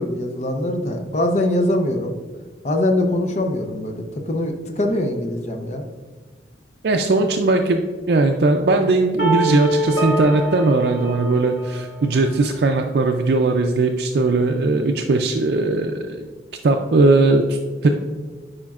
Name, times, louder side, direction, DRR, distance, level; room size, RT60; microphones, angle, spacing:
voice 1, 0.0-2.2 2.6-5.8, left 1 dB, 40° left, 4 dB, 0.6 m, -22 dB
voice 2, 6.8-16.2 16.6-17.9, right 2 dB, 60° right, 4 dB, 0.4 m, -19 dB
sound 1, 9.2-12.1, right 2 dB, 80° left, 1.7 m, -24 dB
8.7 x 5.1 x 2.4 m, 1.4 s
head